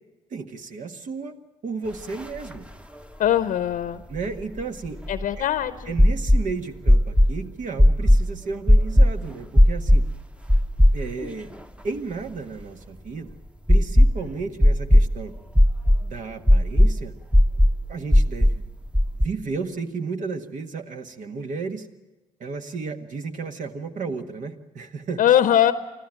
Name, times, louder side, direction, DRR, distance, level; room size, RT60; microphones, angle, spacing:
voice 1, 0.3-1.4 1.6-2.7 4.1-5.0 5.9-10.0 10.9-11.5 11.8-13.3 13.7-15.3 16.0-17.1 17.9-18.6 19.2-21.9 22.4-25.2, right 4 dB, 55° right, 6 dB, 1.7 m, -33 dB
sound 1, 2.2-2.3 2.5-2.6 4.2-5.4 6.0-6.4 6.9-7.3 7.8-8.3 8.7-9.1 9.6-10.1 10.5-11.3 11.6-11.7 13.7-14.2 14.6-15.1 15.5-16.0 16.5-16.9 17.3-17.8 18.1-18.6 18.9-19.3, left 1 dB, 5° right, 1.1 m, -15 dB
voice 2, 3.2-4.0 5.1-6.0 25.2-25.7, left 11 dB, 60° left, 12 dB, 0.8 m, -21 dB
25.0 x 15.0 x 9.0 m, 1.1 s
hypercardioid pair, 50°, 15 cm